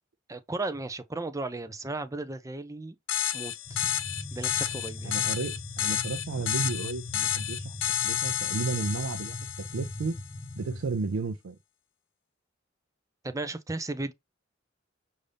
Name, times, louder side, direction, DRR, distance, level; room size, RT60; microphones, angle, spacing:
voice 1, 0.3-3.0 3.3-3.8 4.3-5.2 13.2-14.1, right 2 dB, 15° right, 0.5 m, -35 dB
sound 1, 3.1-10.2, left 11 dB, 80° left, 0.5 m, -31 dB
sound 2, 3.7-10.8, left 1 dB, 40° left, 1.1 m, -40 dB
voice 2, 5.0-7.8 8.0-10.2 10.6-11.6, right 4 dB, 90° right, 0.5 m, -33 dB
5.3 x 2.6 x 3.3 m
head